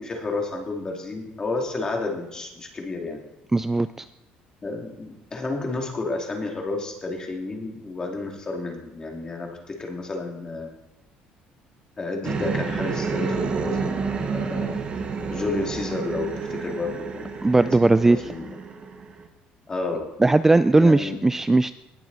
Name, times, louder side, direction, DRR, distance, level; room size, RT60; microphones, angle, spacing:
voice 1, 0.0-3.2 4.6-10.7 12.0-14.0 14.3-14.8 15.3-17.8 18.1-18.5 19.7-20.1 20.8-21.2, left 3 dB, 25° left, 1 dB, 2.5 m, -31 dB
voice 2, 3.5-4.1 17.4-18.3 20.2-21.7, right 2 dB, 10° right, 13 dB, 0.3 m, -18 dB
sound 1, 12.2-19.2, right 5 dB, 35° right, 1.4 m, -29 dB
19.0 x 7.1 x 4.1 m, 0.93 s
cardioid pair, 115°, 3 cm